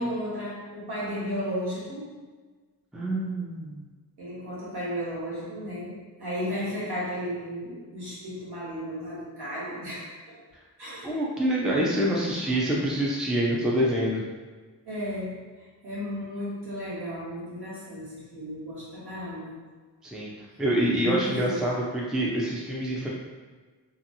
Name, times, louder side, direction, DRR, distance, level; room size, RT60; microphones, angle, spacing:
voice 1, 0.0-2.2 4.2-10.4 10.8-11.1 14.8-19.5 21.0-21.6, equal, 70° right, -8 dB, 1.4 m, -34 dB
voice 2, 2.9-3.8 11.0-14.2 20.0-23.1, right 1 dB, ahead, -4 dB, 0.4 m, -26 dB
2.7 x 2.6 x 2.7 m, 1.4 s
wide cardioid pair, 85°, 42 cm